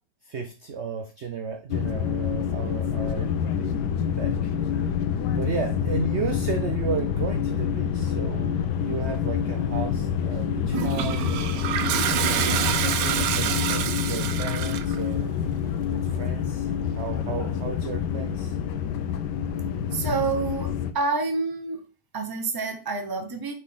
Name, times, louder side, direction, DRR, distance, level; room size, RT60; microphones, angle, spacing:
voice 1, 0.2-3.3 3.6-4.5 5.4-11.6 12.1-15.3 15.9-16.7 16.9-18.6, right 5 dB, 55° right, 5 dB, 0.7 m, -34 dB
sound 1, 1.7-20.9, left 8 dB, 75° left, 1.3 m, -27 dB
Toilet flush, 10.7-15.0, right 9 dB, 75° right, 1.3 m, -27 dB
voice 2, 19.9-21.8 22.1-23.5, right 4 dB, 15° right, 5 dB, 0.8 m, -28 dB
6.6 x 4.5 x 3.8 m, 0.34 s
omnidirectional pair, 1.9 m